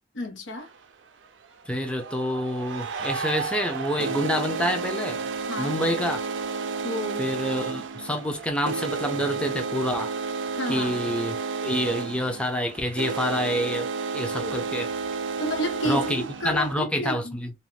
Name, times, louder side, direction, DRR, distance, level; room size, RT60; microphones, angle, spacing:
voice 1, 0.1-0.7 5.5-5.8 6.8-7.3 10.5-11.0 14.3-14.7 15.4-17.4, equal, 90° left, 0.8 m, -31 dB
sound 1, 0.6-0.7 1.7-16.7, right 5 dB, 80° right, 0.5 m, -31 dB
voice 2, 1.7-5.3 5.6-6.2 7.2-10.1 10.7-11.4 11.6-14.9 15.8-17.5, equal, 5° left, 0.5 m, -27 dB
2.6 x 2.0 x 3.1 m
head